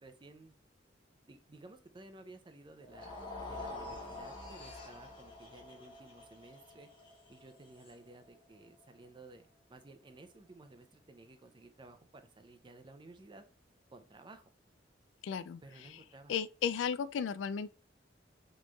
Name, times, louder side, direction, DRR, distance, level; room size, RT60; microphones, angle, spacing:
voice 1, 0.0-0.5 1.2-3.2 3.5-6.9 7.3-13.4 13.9-14.4 15.6-16.3, right 2 dB, 25° right, 0.5 m, -55 dB
sound 1, 2.8-9.1, left 2 dB, 30° left, 1.0 m, -47 dB
voice 2, 15.2-15.6 16.3-17.7, left 7 dB, 85° left, 0.3 m, -34 dB
4.2 x 3.0 x 2.3 m
head